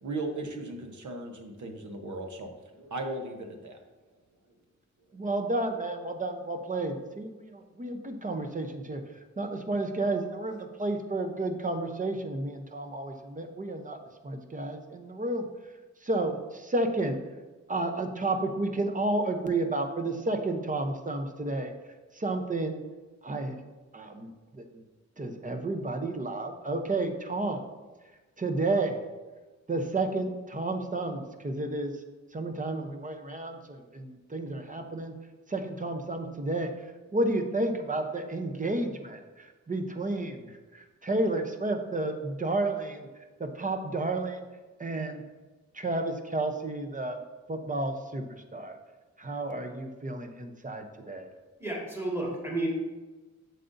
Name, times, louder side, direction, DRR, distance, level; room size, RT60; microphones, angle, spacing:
voice 1, 0.0-2.5 2.8-3.8, right 2 dB, 80° right, 4 dB, 1.0 m, -37 dB
voice 2, 5.1-9.0 9.4-14.0 14.2-15.5 16.0-17.2 17.7-21.7 22.1-22.8 23.2-23.6 23.9-24.8 25.2-27.6 28.4-29.0 29.7-31.9 32.3-35.1 35.5-36.7 37.1-43.1 43.4-44.4 44.8-45.2 45.7-47.2 47.5-48.2 48.5-48.8 49.2-51.3, right 2 dB, 25° right, 5 dB, 0.7 m, -31 dB
voice 3, 51.6-52.7, right 1 dB, 10° right, -3 dB, 1.9 m, -31 dB
7.6 x 6.8 x 2.6 m, 1.2 s
wide cardioid pair, 120°, 29 cm